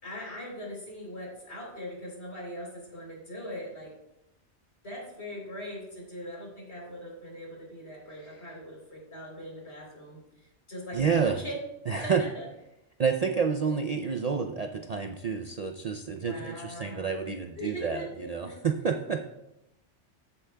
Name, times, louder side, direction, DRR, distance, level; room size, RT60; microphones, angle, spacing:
voice 1, 0.0-3.9 4.8-10.2 10.7-11.5 12.0-12.5 16.1-18.6, equal, 65° left, -3 dB, 3.9 m, -41 dB
voice 2, 10.9-11.4 11.9-12.2 13.0-19.2, right 6 dB, 50° right, 5 dB, 0.5 m, -29 dB
14.5 x 8.4 x 2.3 m, 0.89 s
omnidirectional pair, 1.2 m